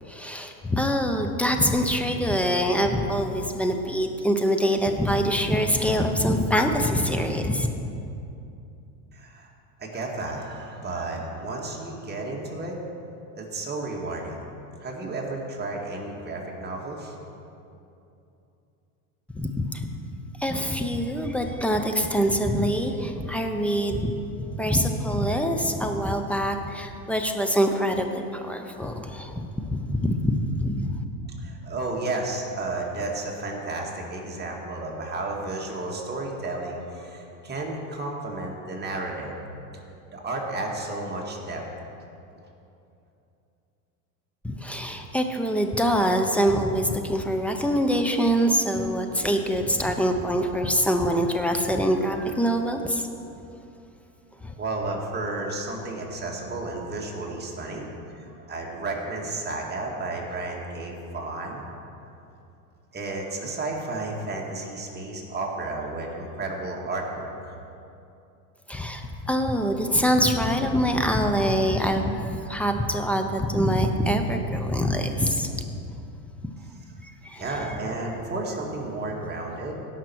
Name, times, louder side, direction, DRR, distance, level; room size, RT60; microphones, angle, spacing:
voice 1, 0.1-7.7 19.4-19.9 20.4-30.9 44.4-53.1 54.4-54.5 68.7-75.6 77.0-77.4, equal, 5° left, 4 dB, 0.7 m, -24 dB
voice 2, 9.1-9.5 9.8-12.8 13.3-14.4 14.8-17.2 31.4-39.4 40.1-41.6 54.6-61.6 62.9-67.6 77.4-79.9, right 2 dB, 20° right, -1 dB, 2.1 m, -32 dB
17.0 x 5.9 x 4.7 m, 2.7 s
hypercardioid pair, 95°, 47 cm